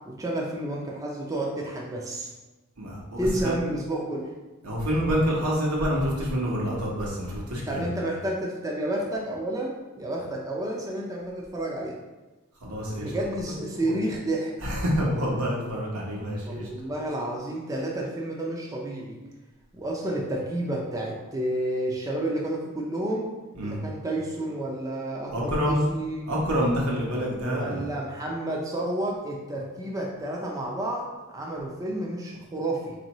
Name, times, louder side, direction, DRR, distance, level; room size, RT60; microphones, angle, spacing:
voice 1, 0.1-2.3 3.2-4.3 7.7-12.0 13.0-14.6 16.4-19.2 19.7-23.3 23.6-26.2 27.5-31.1 31.3-32.9, right 1 dB, 15° right, -2 dB, 0.4 m, -30 dB
voice 2, 2.8-3.5 4.6-7.9 12.6-13.1 13.8-13.9 14.6-16.7 23.6-23.8 25.3-25.8 26.3-27.8, equal, 85° right, -4 dB, 1.0 m, -27 dB
4.3 x 2.7 x 3.0 m, 1.2 s
head